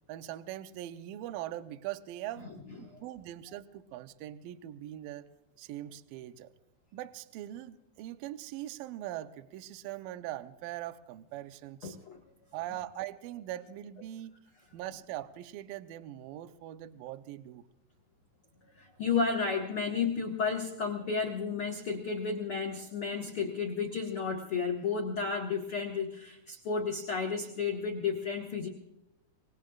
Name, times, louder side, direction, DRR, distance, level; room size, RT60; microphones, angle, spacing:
voice 1, 0.1-2.5 2.8-5.3 5.6-6.5 6.9-12.0 12.5-14.3 14.7-17.7, right 13 dB, 85° right, 10 dB, 2.0 m, -41 dB
voice 2, 11.8-12.2 18.7-28.7, left 5 dB, 85° left, 0 dB, 1.2 m, -32 dB
25.5 x 20.5 x 2.4 m, 0.85 s
omnidirectional pair, 5.0 m